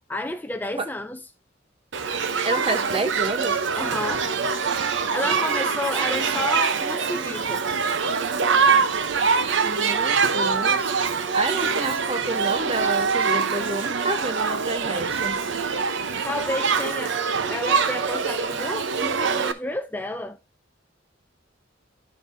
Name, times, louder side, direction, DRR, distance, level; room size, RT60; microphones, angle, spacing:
voice 1, 0.1-1.2 3.7-4.3 5.1-7.6 16.2-17.2 17.5-20.4, left 2 dB, 10° left, 0.4 m, -31 dB
Shout / Human group actions, 1.9-19.5, right 5 dB, 65° right, 0.7 m, -24 dB
voice 2, 2.4-3.7 5.2-5.4 9.6-10.9 11.3-15.5, right 2 dB, 30° right, 0.9 m, -29 dB
11.5 x 5.3 x 2.6 m
head